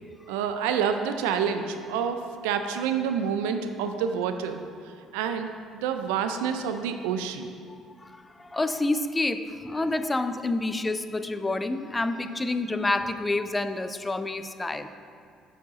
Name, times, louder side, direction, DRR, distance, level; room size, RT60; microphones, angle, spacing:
voice 1, 0.3-4.6 5.1-7.5, right 7 dB, 85° right, 7 dB, 0.3 m, -28 dB
voice 2, 7.7-14.9, left 2 dB, 20° left, 10 dB, 0.4 m, -28 dB
7.1 x 4.7 x 4.0 m, 2.2 s
supercardioid pair, 70°, 0 cm